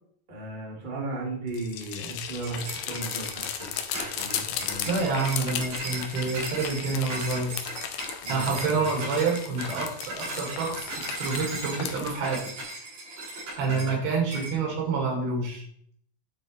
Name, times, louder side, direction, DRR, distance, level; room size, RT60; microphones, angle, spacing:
voice 1, 0.3-4.9 8.2-8.9 13.6-13.9, right 2 dB, 35° right, -4 dB, 0.7 m, -36 dB
sound 1, 1.5-12.1, left 9 dB, 80° left, 2.1 m, -36 dB
sound 2, 2.4-14.0 14.3-14.6, right 2 dB, 65° right, 4.9 m, -37 dB
voice 2, 4.9-7.6 8.3-12.5 13.6-15.6, right 4 dB, 80° right, 0 dB, 3.8 m, -28 dB
11.0 x 4.0 x 3.1 m, 0.65 s
omnidirectional pair, 4.3 m